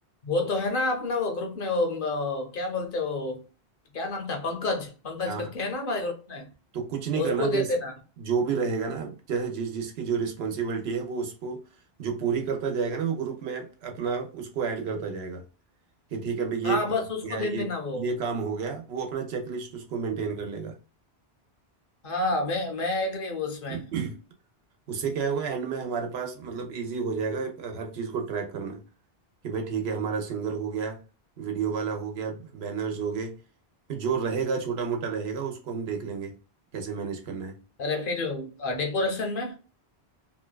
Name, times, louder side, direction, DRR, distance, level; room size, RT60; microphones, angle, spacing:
voice 1, 0.2-3.4 3.9-6.5 7.1-7.9 16.6-18.1 22.0-23.8 37.8-39.6, left 2 dB, 60° left, 0.8 m, -29 dB
voice 2, 6.7-7.7 8.2-11.6 12.0-15.4 16.1-16.8 17.2-20.8 23.7-24.2 24.9-28.8 29.4-31.0 31.4-33.4 33.9-36.4 36.7-37.6, right 6 dB, 80° right, 0.9 m, -30 dB
2.7 x 2.2 x 2.2 m
omnidirectional pair, 1.1 m